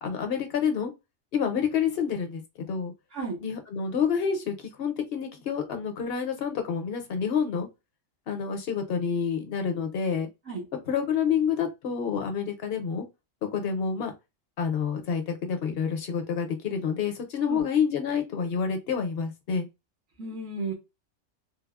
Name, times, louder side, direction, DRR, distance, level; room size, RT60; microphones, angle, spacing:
voice 1, 0.0-0.9 1.3-2.9 3.4-7.7 8.3-10.3 10.9-13.1 13.5-14.1 14.6-19.7, left 6 dB, 60° left, 0.8 m, -28 dB
voice 2, 20.2-20.7, right 3 dB, 70° right, 1.3 m, -33 dB
3.4 x 2.0 x 2.3 m
omnidirectional pair, 1.3 m